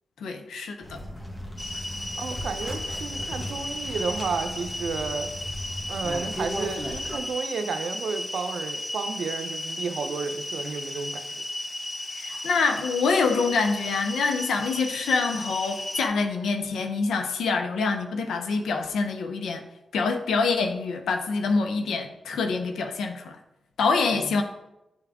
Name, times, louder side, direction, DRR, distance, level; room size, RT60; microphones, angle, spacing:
voice 1, 0.2-1.0 12.1-19.6 19.9-23.4 23.8-24.4, left 4 dB, 85° left, 6 dB, 0.6 m, -26 dB
sound 1, 0.8-7.2, equal, 30° left, 1.4 m, -37 dB
sound 2, 1.6-16.1, left 1 dB, 50° left, 0.9 m, -35 dB
voice 2, 2.2-5.3 5.9-11.3 24.1-24.4, right 5 dB, 80° right, 8 dB, 0.6 m, -32 dB
8.6 x 3.5 x 3.5 m, 0.93 s
cardioid pair, 50°, 0 cm